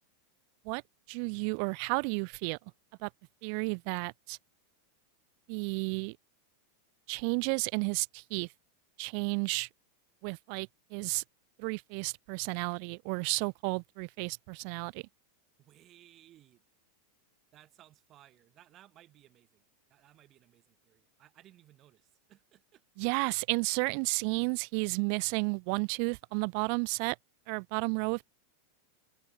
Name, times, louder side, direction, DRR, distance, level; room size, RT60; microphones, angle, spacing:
voice 1, 1.1-2.6 3.0-3.1 3.4-4.4 5.5-6.2 7.1-8.5 9.0-9.7 10.2-11.2 11.6-15.0 23.0-27.2 27.5-28.2, right 40 dB or more, 55° right, 0.6 m, -32 dB
voice 2, 15.6-16.6 17.5-19.6 19.9-22.8, right 13 dB, 40° right, 4.1 m, -60 dB
hypercardioid pair, 100°, 0 cm